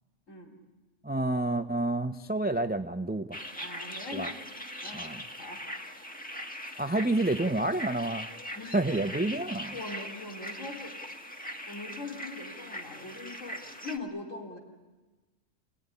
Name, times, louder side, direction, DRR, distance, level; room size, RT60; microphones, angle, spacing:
voice 1, 0.3-0.6 3.6-4.4 4.8-5.1 5.4-5.6 8.5-8.8 9.5-11.0 11.7-14.6, left 2 dB, 80° left, -1 dB, 4.2 m, -41 dB
voice 2, 1.0-3.4 4.1-4.3 4.9-5.2 6.8-8.3 8.7-9.8, right 2 dB, 10° right, 8 dB, 0.5 m, -29 dB
sound 1, 3.3-14.0, equal, 5° left, 1.7 m, -41 dB
28.5 x 18.5 x 9.9 m, 1.2 s
omnidirectional pair, 1.3 m